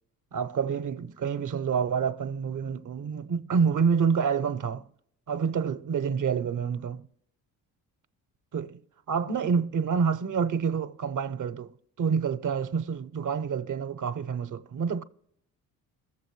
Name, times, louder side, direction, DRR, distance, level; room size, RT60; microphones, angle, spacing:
voice 1, 0.3-4.8 5.3-7.1 8.5-8.8 9.1-11.7 12.0-15.0, right 6 dB, 45° right, 0.8 m, -28 dB
21.5 x 7.4 x 3.2 m
supercardioid pair, 60°, 41 cm